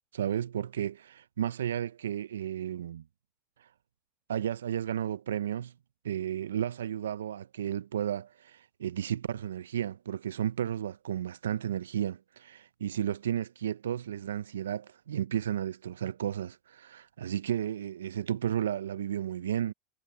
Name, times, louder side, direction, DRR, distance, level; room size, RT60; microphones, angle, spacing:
voice 1, 0.1-3.0 4.3-5.7 6.0-19.7, right 10 dB, 85° right, 0.4 m, -33 dB
hypercardioid pair, 85°, 0 cm